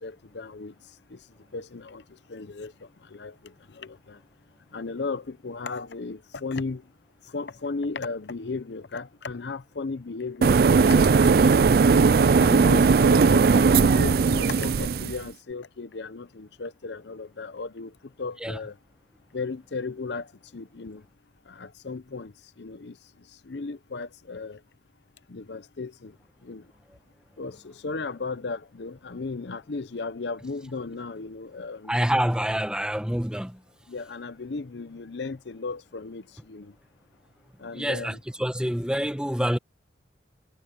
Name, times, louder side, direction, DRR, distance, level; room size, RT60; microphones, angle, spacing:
voice 1, 0.0-0.7 1.1-1.2 1.5-2.0 2.3-2.7 3.1-4.2 4.7-6.8 7.3-11.4 12.0-17.9 18.2-18.8 19.3-20.3 20.5-21.0 21.5-22.3 22.6-23.0 23.5-24.6 25.3-26.1 26.4-26.6 27.4-32.0 33.9-36.7 37.6-38.2, left 3 dB, 70° left, 0.7 m, -35 dB
sound 1, 10.4-15.2, right 5 dB, 55° right, 0.4 m, -18 dB
voice 2, 31.9-33.6 37.7-39.6, equal, 5° right, 1.4 m, -26 dB
head